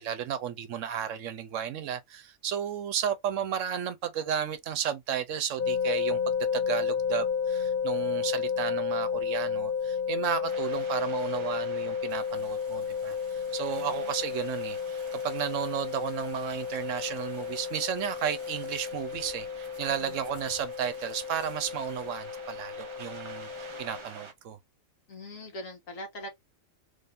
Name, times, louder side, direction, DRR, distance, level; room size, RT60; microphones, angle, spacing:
voice 1, 0.0-23.5 23.8-24.6, right 9 dB, 70° right, 1.0 m, -33 dB
sound 1, 5.6-24.0, left 6 dB, 60° left, 0.6 m, -32 dB
sound 2, 10.5-24.3, right 3 dB, 35° right, 0.5 m, -49 dB
sound 3, 12.1-22.1, left 1 dB, 10° left, 1.1 m, -57 dB
voice 2, 13.7-14.1 19.9-20.2 25.1-26.3, left 1 dB, 75° left, 1.7 m, -42 dB
3.5 x 2.7 x 3.5 m
omnidirectional pair, 1.4 m